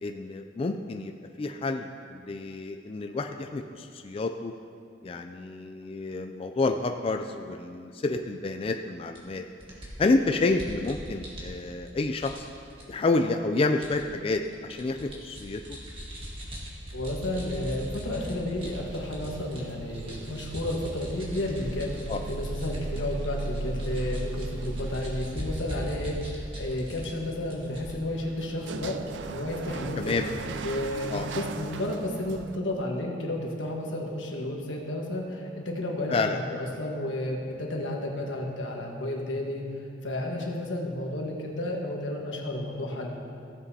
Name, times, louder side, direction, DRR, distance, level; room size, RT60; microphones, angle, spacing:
voice 1, 0.0-1.1 1.4-4.5 5.0-9.4 10.0-12.5 12.9-15.6 22.1-22.2 30.0-30.3 31.1-31.3 36.1-36.4, left 3 dB, 30° left, 5 dB, 0.3 m, -29 dB
sound 1, 9.2-9.3 9.6-11.9 12.2-12.8 13.8-14.0 14.4-19.6 19.9-27.1 27.4-28.0, equal, 30° right, 1.7 m, -40 dB
voice 2, 16.9-21.9 22.3-29.0 29.3-30.2 30.6-39.6 40.0-43.1, left 1 dB, 90° left, 0 dB, 1.4 m, -32 dB
sound 2, 18.6-32.6, right 3 dB, 70° right, 0.4 m, -38 dB
15.5 x 7.4 x 2.8 m, 2.4 s
head